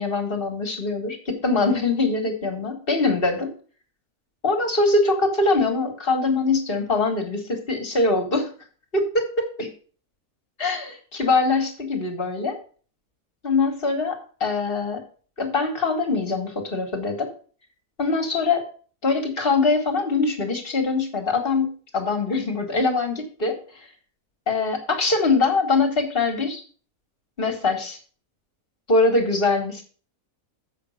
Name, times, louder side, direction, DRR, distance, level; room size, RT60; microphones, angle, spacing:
voice 1, 0.0-3.5 4.4-8.5 8.9-9.7 10.6-12.6 13.4-15.0 15.4-17.3 18.0-18.6 19.0-23.6 24.5-26.6 27.4-28.0 28.9-29.8, left 3 dB, 40° left, 5 dB, 2.0 m, -23 dB
7.7 x 5.8 x 6.4 m, 0.41 s
omnidirectional pair, 1.5 m